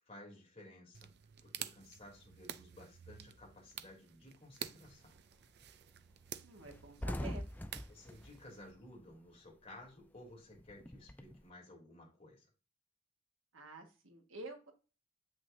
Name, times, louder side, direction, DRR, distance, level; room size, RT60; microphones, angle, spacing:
voice 1, 0.0-1.1 1.4-5.2 7.9-12.5, left 1 dB, 30° left, -1 dB, 3.2 m, -55 dB
sound 1, 0.9-8.7, right 10 dB, 55° right, 0.5 m, -50 dB
sound 2, 4.9-5.2 5.6-5.8 6.0-6.2 6.5-9.5 9.8-11.4, left 1 dB, 10° left, 0.4 m, -44 dB
voice 2, 6.4-7.5 13.5-14.7, right 2 dB, 80° right, 3 dB, 1.6 m, -49 dB
8.3 x 5.9 x 2.7 m, 0.34 s
head